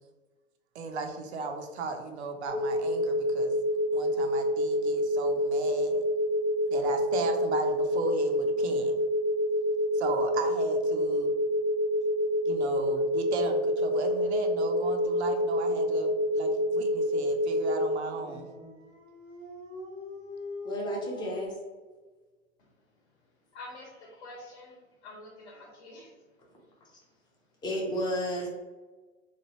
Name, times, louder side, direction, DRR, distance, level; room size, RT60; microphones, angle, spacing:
voice 1, 0.7-3.6 3.9-6.0 6.7-9.0 9.9-11.3 12.5-18.5, right 3 dB, 60° right, 4 dB, 0.5 m, -36 dB
sound 1, 2.5-17.8, equal, 90° left, 0.9 m, -27 dB
Dog, 18.0-21.5, left 2 dB, 85° right, 1.0 m, -43 dB
voice 2, 18.2-18.8 20.6-21.5 26.9-27.0 27.6-28.5, equal, 10° left, -2 dB, 0.6 m, -33 dB
voice 3, 23.5-26.1, left 2 dB, 50° left, -2 dB, 1.0 m, -47 dB
3.0 x 2.3 x 2.9 m, 1.3 s
figure-of-eight pair, 100°, 39 cm